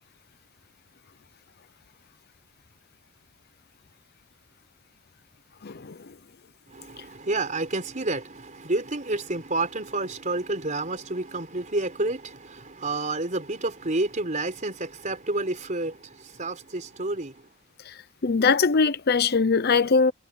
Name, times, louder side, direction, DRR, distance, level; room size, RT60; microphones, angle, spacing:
voice 1, 5.6-6.0 17.9-18.0 18.2-20.1, left 4 dB, 45° left, 0.7 m, -21 dB
voice 2, 6.7-17.5, right 2 dB, 35° right, 4.6 m, -29 dB
head